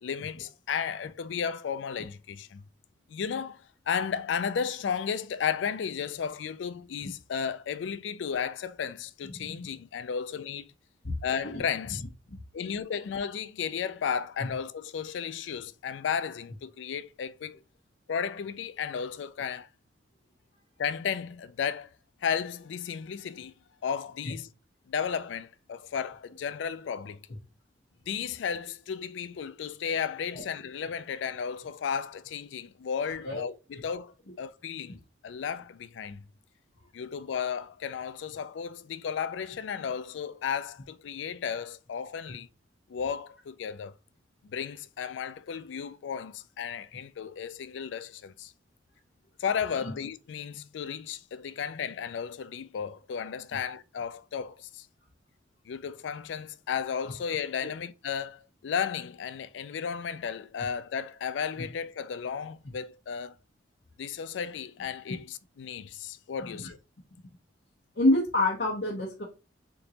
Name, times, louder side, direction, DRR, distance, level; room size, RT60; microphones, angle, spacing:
voice 1, 0.0-2.6 3.1-10.7 11.2-12.0 12.5-17.6 18.1-19.7 20.8-21.9 22.2-23.5 23.8-24.5 24.9-27.2 28.1-36.2 36.9-42.5 42.9-43.9 44.4-48.5 49.4-54.9 55.7-63.4 64.0-66.8, left 7 dB, 80° left, 0.4 m, -34 dB
voice 2, 67.9-69.2, left 1 dB, 65° left, 1.1 m, -27 dB
3.8 x 3.6 x 2.9 m
head